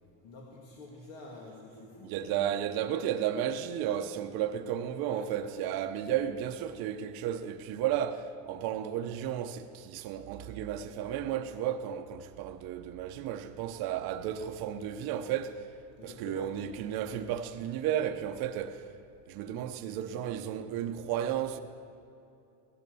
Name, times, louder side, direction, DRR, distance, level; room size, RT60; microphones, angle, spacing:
voice 1, 0.2-2.1 5.0-5.3 16.0-16.5, left 3 dB, 65° left, 2.8 m, -47 dB
voice 2, 2.0-15.6 16.0-18.9 19.3-21.6, right 10 dB, 50° right, 0.9 m, -33 dB
17.0 x 12.5 x 6.9 m
cardioid pair, 165°, 45 cm